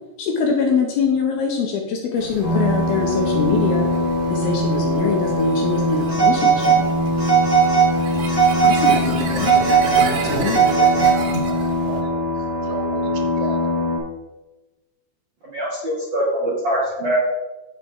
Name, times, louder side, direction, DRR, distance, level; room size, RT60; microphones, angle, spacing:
voice 1, 0.2-3.9 4.3-6.8 8.6-9.6 10.0-10.6, left 5 dB, 75° left, 1 dB, 2.4 m, -23 dB
sound 1, 2.2-12.0, right 4 dB, 65° right, 2.4 m, -32 dB
sound 2, 2.4-14.0, left 1 dB, 35° left, 2.1 m, -23 dB
Telephone, 6.1-6.8 7.2-7.9 8.3-9.0 9.4-11.4, right 7 dB, 15° right, 2.8 m, -17 dB
voice 2, 11.9-13.6, right 5 dB, 80° right, 5 dB, 3.2 m, -36 dB
voice 3, 15.5-17.2, right 1 dB, 40° right, -8 dB, 1.8 m, -23 dB
8.9 x 7.3 x 3.6 m, 1.1 s
omnidirectional pair, 4.9 m